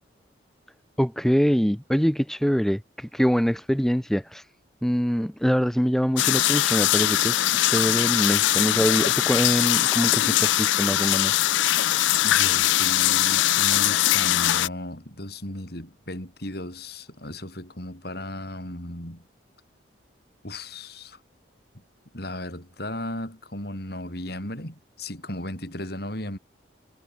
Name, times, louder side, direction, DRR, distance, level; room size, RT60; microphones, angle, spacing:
voice 1, 1.0-4.5 4.8-11.3, equal, ahead, 0.6 m, -24 dB
sound 1, 6.2-14.7, left 14 dB, 70° left, 0.4 m, -21 dB
voice 2, 12.2-19.2 20.4-21.2 22.1-26.4, left 1 dB, 55° left, 7.8 m, -35 dB
head